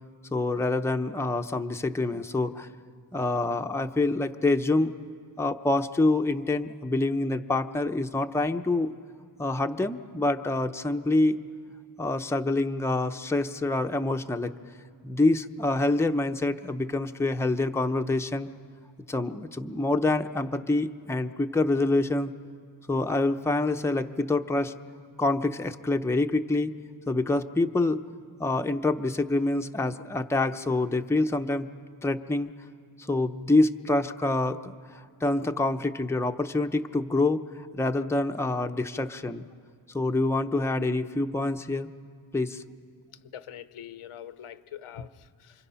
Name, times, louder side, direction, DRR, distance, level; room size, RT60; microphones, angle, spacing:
voice 1, 0.3-2.7 3.1-4.9 5.4-8.9 9.4-11.4 12.0-14.5 15.0-18.5 19.1-22.3 22.9-24.7 25.2-26.7 27.1-28.0 28.4-31.7 32.0-32.5 33.1-39.4 39.9-41.9 42.3-42.6, left 2 dB, 5° left, 6 dB, 0.6 m, -26 dB
voice 2, 43.3-45.7, left 9 dB, 85° left, 12 dB, 0.9 m, -43 dB
28.5 x 26.0 x 5.7 m, 2.2 s
wide cardioid pair, 90°, 49 cm